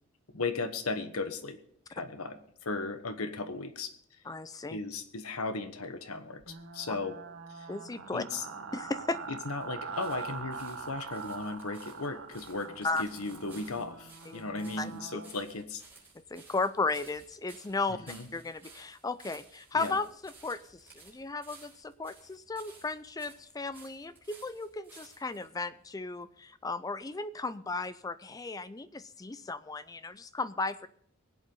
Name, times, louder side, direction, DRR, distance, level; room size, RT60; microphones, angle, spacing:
voice 1, 0.3-1.6 1.9-3.9 4.7-7.2 7.5-7.7 8.1-8.4 9.3-15.8 18.1-18.3 19.7-19.9, left 3 dB, 85° left, 10 dB, 1.2 m, -36 dB
voice 2, 4.2-4.8 6.9-7.0 7.7-8.2 8.7-9.2 12.8-13.0 14.3-14.4 14.8-14.9 16.1-30.9, left 3 dB, 15° left, 14 dB, 0.4 m, -35 dB
sound 1, 6.4-15.3, right 5 dB, 70° right, 1.4 m, -43 dB
sound 2, 9.0-25.5 26.2-26.3, right 3 dB, 10° right, 4.4 m, -56 dB
21.5 x 8.1 x 3.9 m, 0.63 s
head